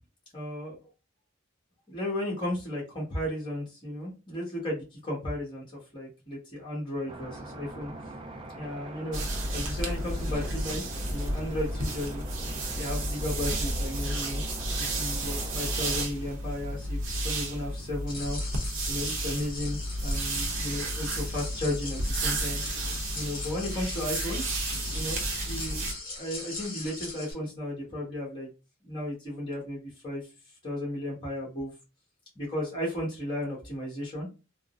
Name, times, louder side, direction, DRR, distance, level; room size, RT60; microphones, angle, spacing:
voice 1, 0.3-0.9 1.9-5.7 5.9-7.9 8.5-9.3 9.5-12.2 12.8-14.4 14.8-18.4 18.9-22.6 23.1-24.4 24.9-28.5 28.8-30.2 30.6-31.7 32.3-34.3, left 1 dB, 25° left, -3 dB, 1.2 m, -34 dB
sound 1, 7.1-16.1, right 2 dB, 25° right, 0.4 m, -43 dB
sound 2, 9.1-25.9, right 1 dB, 65° right, 0.7 m, -32 dB
sound 3, 18.1-27.3, left 3 dB, 45° left, 1.6 m, -40 dB
3.5 x 2.0 x 2.5 m, 0.29 s
head